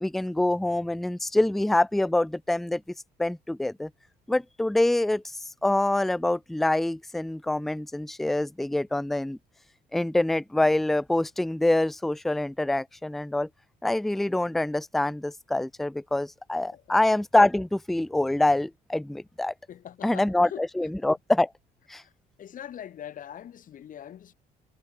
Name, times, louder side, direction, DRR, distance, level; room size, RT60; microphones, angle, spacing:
voice 1, 0.0-2.8 3.2-3.9 4.3-9.4 9.9-13.5 13.8-19.5 20.0-21.5 21.9-22.0, left 1 dB, ahead, 0.4 m, -25 dB
voice 2, 19.7-20.6 22.0-22.1 22.4-24.3, left 10 dB, 55° left, 3.5 m, -42 dB
cardioid pair, 110°, 17 cm